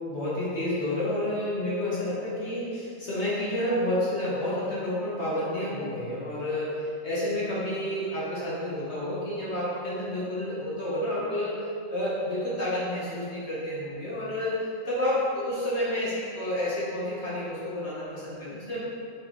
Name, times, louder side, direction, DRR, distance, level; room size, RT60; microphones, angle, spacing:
voice 1, 0.1-11.6 11.9-18.8, left 1 dB, 50° left, -8 dB, 1.8 m, -30 dB
8.1 x 6.3 x 3.8 m, 2.4 s
omnidirectional pair, 1.4 m